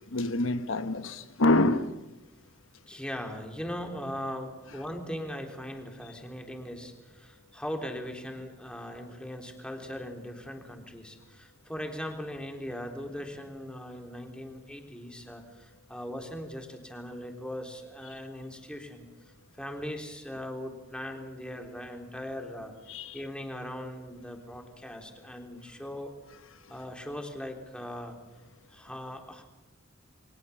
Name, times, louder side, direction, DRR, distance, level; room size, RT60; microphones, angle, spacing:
voice 1, 0.1-1.9 22.9-23.2, left 2 dB, 70° left, 1.3 m, -26 dB
voice 2, 2.9-19.3 19.6-22.7 23.1-26.1 26.7-28.2 28.7-29.4, equal, 5° left, 3.7 m, -39 dB
29.5 x 23.5 x 7.2 m
head